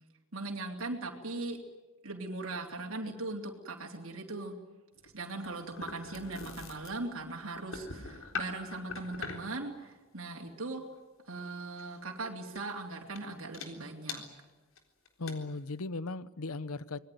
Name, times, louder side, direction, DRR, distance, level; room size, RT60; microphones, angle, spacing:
voice 1, 0.3-1.6 2.0-4.5 5.0-10.8 11.3-14.2, right 2 dB, 70° right, 0 dB, 3.2 m, -39 dB
sound 1, 5.0-9.6 11.8-12.0 12.5-12.7 13.1-13.2 13.5-13.7 14.1-14.2 14.8-14.9 15.1-15.3, left 4 dB, 70° left, 3.8 m, -42 dB
voice 2, 15.2-17.0, left 3 dB, 90° left, 17 dB, 0.9 m, -37 dB
25.5 x 21.0 x 9.3 m, 1.2 s
head